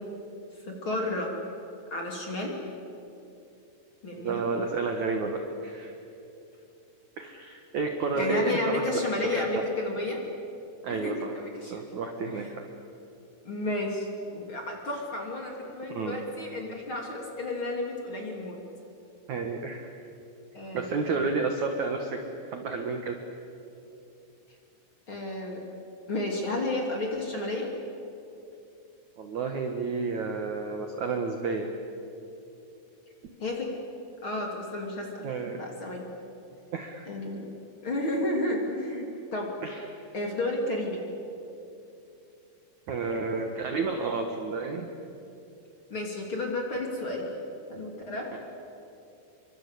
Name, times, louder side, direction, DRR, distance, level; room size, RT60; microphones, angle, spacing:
voice 1, 0.6-1.4 1.9-2.6 4.0-4.5 8.1-10.2 10.9-11.8 12.3-12.5 13.4-18.6 20.5-21.2 25.1-25.7 26.1-27.7 33.4-33.7 34.2-35.2 35.5-36.0 37.1-37.4 37.8-39.5 40.1-41.0 45.9-47.3 47.7-48.3, left 2 dB, 30° left, 0 dB, 3.0 m, -32 dB
voice 2, 4.2-5.9 7.2-8.8 9.4-9.5 10.8-11.3 11.7-12.6 15.9-16.2 19.3-19.8 20.7-22.2 22.5-23.2 29.2-31.7 35.2-35.6 36.7-37.1 39.6-39.8 42.9-44.9 48.3-48.4, right 4 dB, 75° right, 4 dB, 1.7 m, -31 dB
27.5 x 24.5 x 8.5 m, 2.8 s
omnidirectional pair, 5.9 m